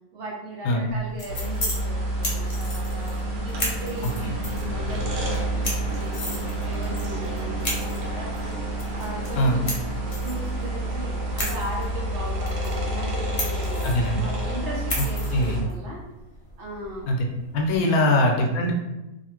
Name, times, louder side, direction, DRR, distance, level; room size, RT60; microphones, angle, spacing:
voice 1, 0.1-9.8 10.2-16.1 16.6-17.3 17.8-18.2, right 1 dB, 65° right, -4 dB, 0.7 m, -38 dB
sound 1, 0.9-17.8, left 1 dB, 40° left, 0.5 m, -36 dB
sound 2, 1.3-15.6, right 1 dB, 85° right, 1.2 m, -29 dB
voice 2, 13.8-14.2 15.3-15.6 17.1-17.3 17.5-18.7, left 1 dB, 80° left, 1 dB, 1.0 m, -21 dB
2.8 x 2.4 x 2.9 m, 0.97 s
omnidirectional pair, 1.5 m